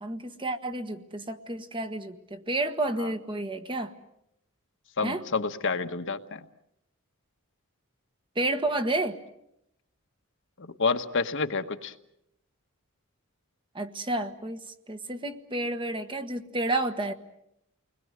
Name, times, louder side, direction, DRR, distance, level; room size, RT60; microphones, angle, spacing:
voice 1, 0.0-3.9 5.0-5.2 8.3-9.2 13.7-17.1, right 2 dB, 25° right, 8 dB, 1.4 m, -30 dB
voice 2, 5.0-6.4 10.6-11.9, left 4 dB, 55° left, 7 dB, 1.3 m, -29 dB
30.0 x 21.0 x 8.1 m, 0.81 s
head